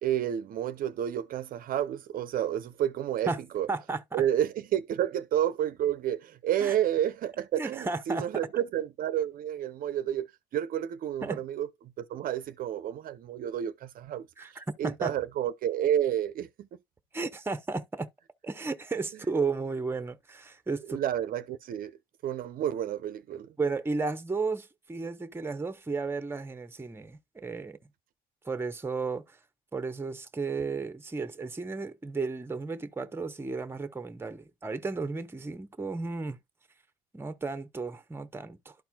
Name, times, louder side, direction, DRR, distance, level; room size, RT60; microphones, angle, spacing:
voice 1, 0.0-3.7 4.1-10.3 10.5-11.7 12.0-16.7 20.9-22.0 22.2-23.5, right 10 dB, 60° right, 0.6 m, -30 dB
voice 2, 3.7-4.2 6.6-6.8 7.6-8.3 11.2-11.4 14.4-15.1 17.1-18.1 18.4-21.0 23.6-27.8 28.4-29.4 29.7-36.4 37.1-38.7, right 4 dB, 15° right, 0.8 m, -33 dB
12.5 x 4.4 x 2.2 m
cardioid pair, 110°, 17 cm